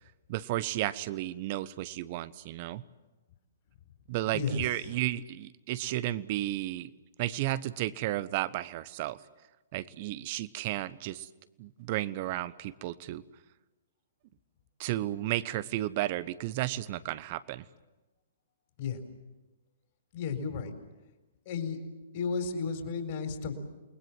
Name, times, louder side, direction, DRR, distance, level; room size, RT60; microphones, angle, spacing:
voice 1, 0.3-2.8 4.1-6.9 7.2-9.2 9.7-11.3 11.6-13.2 14.8-17.6, right 15 dB, 45° right, 17 dB, 1.0 m, -33 dB
voice 2, 4.3-4.9 18.8-19.0 20.1-20.7 21.5-21.8 22.1-23.5, left 5 dB, 45° left, 6 dB, 4.3 m, -33 dB
28.5 x 21.0 x 7.6 m, 1.1 s
figure-of-eight pair, 120°, 0 cm